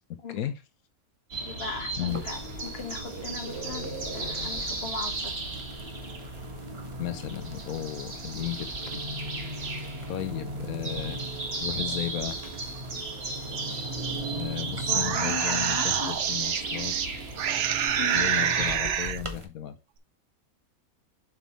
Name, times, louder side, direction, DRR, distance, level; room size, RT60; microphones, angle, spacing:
voice 1, 0.3-0.6 2.0-2.2 7.0-8.9 10.1-11.2 11.6-12.4 14.3-17.2 18.1-19.8, left 11 dB, 85° left, 1.2 m, -34 dB
sound 1, 1.3-18.8, right 2 dB, 45° right, 1.8 m, -35 dB
voice 2, 1.4-5.3 14.9-16.1 18.0-18.3, left 4 dB, 45° left, 1.7 m, -37 dB
sound 2, 2.1-19.4, right 1 dB, 25° right, 1.1 m, -47 dB
sound 3, 14.6-17.1 17.4-19.2, right 9 dB, 60° right, 1.0 m, -27 dB
7.7 x 5.4 x 3.1 m
omnidirectional pair, 1.5 m